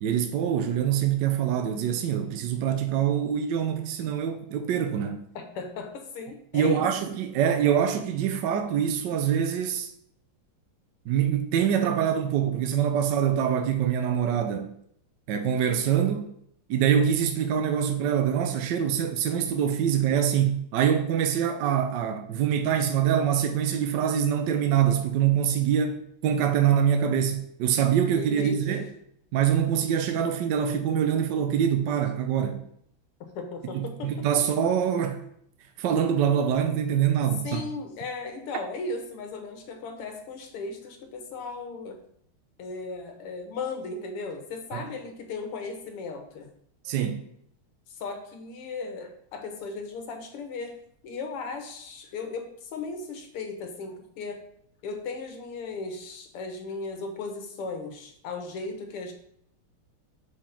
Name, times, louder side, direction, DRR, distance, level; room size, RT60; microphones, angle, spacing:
voice 1, 0.0-5.2 6.5-9.9 11.1-14.7 15.3-16.3 16.7-28.9 29.3-32.6 33.7-35.2 35.8-37.6 44.7-44.9 46.8-47.2, right 8 dB, 70° right, 1.1 m, -24 dB
voice 2, 5.4-6.9 28.2-28.9 33.2-34.4 37.4-42.0 42.6-46.5 47.9-50.8 51.0-54.4 54.8-59.1, left 3 dB, 90° left, 2.0 m, -36 dB
5.3 x 5.0 x 5.7 m
omnidirectional pair, 2.4 m